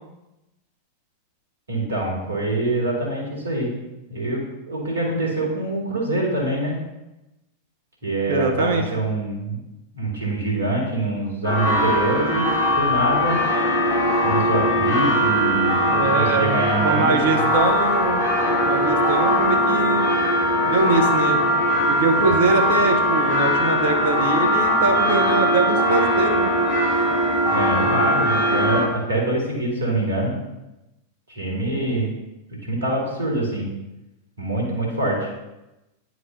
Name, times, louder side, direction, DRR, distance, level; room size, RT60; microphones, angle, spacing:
voice 1, 1.7-3.7 4.1-6.7 8.0-9.6 9.9-13.4 14.2-17.4 22.2-22.4 27.4-30.3 31.3-32.1 32.6-33.7 34.4-35.3, right 2 dB, 75° right, -2 dB, 1.9 m, -25 dB
voice 2, 8.3-8.8 15.9-18.2 18.5-20.1 20.7-21.4 21.9-26.5, right 3 dB, 60° right, 4 dB, 0.8 m, -23 dB
sound 1, 11.4-28.8, equal, 45° left, 2.3 m, -20 dB
9.8 x 4.7 x 2.6 m, 0.97 s
figure-of-eight pair, 90°, 0 cm